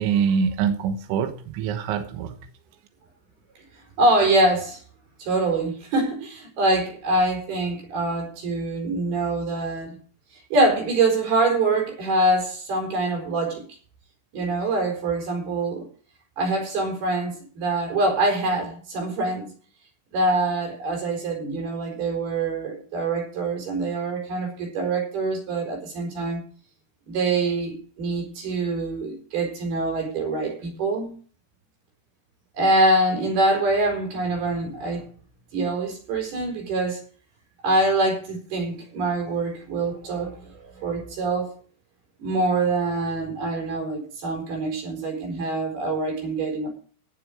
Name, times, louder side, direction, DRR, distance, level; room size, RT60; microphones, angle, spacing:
voice 1, 0.0-2.4, right 7 dB, 80° right, 3.7 m, -24 dB
voice 2, 4.0-4.8 5.2-10.0 10.5-13.7 14.3-15.9 16.4-19.5 20.1-26.4 27.1-31.1 32.5-35.1 35.5-37.0 37.6-41.5 42.2-46.8, right 2 dB, 55° right, 6.2 m, -24 dB
18.0 x 7.4 x 5.1 m
omnidirectional pair, 5.5 m